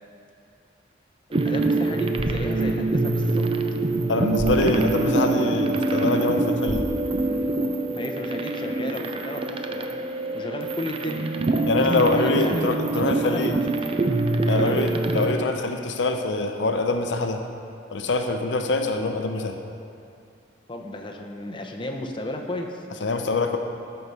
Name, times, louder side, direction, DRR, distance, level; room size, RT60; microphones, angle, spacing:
voice 1, 1.3-3.4 7.9-10.0 10.3-11.3 11.7-14.2 14.6-14.8 20.7-22.9, left 1 dB, 25° left, 2 dB, 0.7 m, -33 dB
sound 1, 1.3-15.3, right 2 dB, 30° right, 0.5 m, -25 dB
sound 2, 2.0-8.0, equal, 55° right, 1.6 m, -38 dB
voice 2, 4.1-6.9 11.7-13.6 14.5-17.4 17.9-19.6 23.0-23.6, left 2 dB, 75° left, 5 dB, 0.6 m, -24 dB
13.0 x 4.7 x 5.6 m, 2.5 s
head